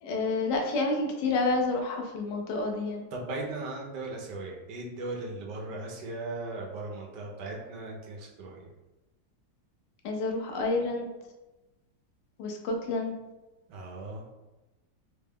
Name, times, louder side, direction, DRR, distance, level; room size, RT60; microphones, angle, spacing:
voice 1, 0.0-3.1 10.0-11.1 12.4-13.1, left 3 dB, 80° left, 2 dB, 1.3 m, -29 dB
voice 2, 3.1-8.7 13.7-14.3, right 2 dB, 80° right, -1 dB, 1.3 m, -38 dB
3.8 x 2.2 x 3.5 m, 1.1 s
omnidirectional pair, 1.9 m